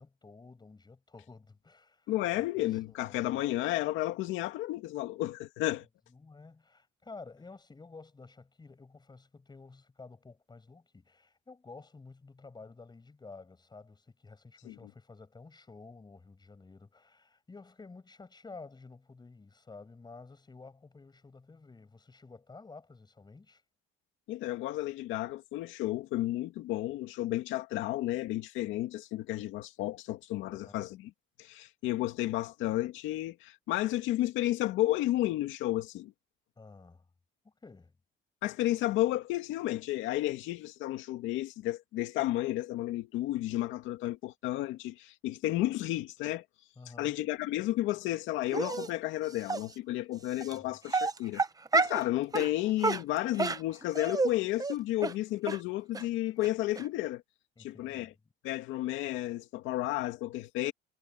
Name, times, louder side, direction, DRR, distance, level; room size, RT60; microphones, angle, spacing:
voice 1, 0.0-3.4 6.1-23.6 30.5-30.9 36.6-37.1 37.4-37.9 46.8-47.2 50.4-50.8 57.6-58.2, left 3 dB, 20° left, 7.5 m, -52 dB
voice 2, 2.1-5.9 14.6-14.8 24.3-31.1 31.4-36.1 38.4-46.4 47.0-51.4 51.7-57.2 57.6-58.1 58.4-60.7, left 15 dB, 90° left, 2.2 m, -32 dB
Dog, 48.5-48.9 49.5-49.6 50.4-50.5 50.9-52.0 52.3-52.5 52.8-54.3 54.6-54.7 55.0-55.1 55.5-55.6 55.9-56.0 56.4-56.5 56.8-56.9, right 4 dB, 20° right, 1.0 m, -29 dB
cardioid pair, 105°, 19 cm